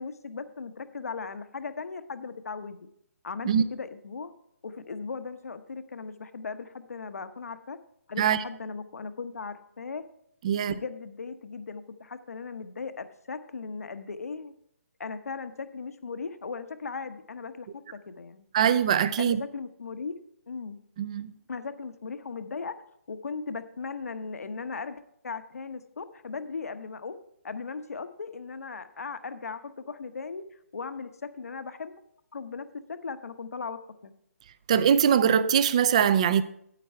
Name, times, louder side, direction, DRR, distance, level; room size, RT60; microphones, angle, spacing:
voice 1, 0.0-2.8 3.2-4.3 4.6-7.8 8.1-10.0 10.7-14.5 15.0-18.4 19.2-20.1 20.5-20.8 21.5-22.7 23.1-27.2 27.4-30.4 30.7-31.9 32.3-34.1, left 4 dB, 75° left, 1.0 m, -38 dB
voice 2, 10.4-10.8 18.5-19.4 21.0-21.3 34.7-36.4, right 8 dB, 25° right, 0.4 m, -22 dB
9.2 x 9.2 x 4.5 m
hypercardioid pair, 165°, 8 cm